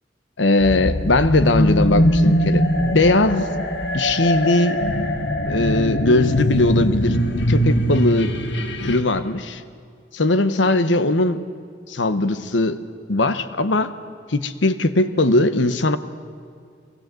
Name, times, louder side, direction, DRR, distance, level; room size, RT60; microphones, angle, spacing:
voice 1, 0.4-3.5 3.9-4.8 5.5-8.3 8.8-9.6 10.1-11.4 11.9-12.8 13.1-13.9 14.3-16.0, left 2 dB, 90° left, 12 dB, 1.0 m, -19 dB
sound 1, 0.6-9.0, equal, 75° left, 1.4 m, -21 dB
23.5 x 19.0 x 7.6 m, 2.3 s
head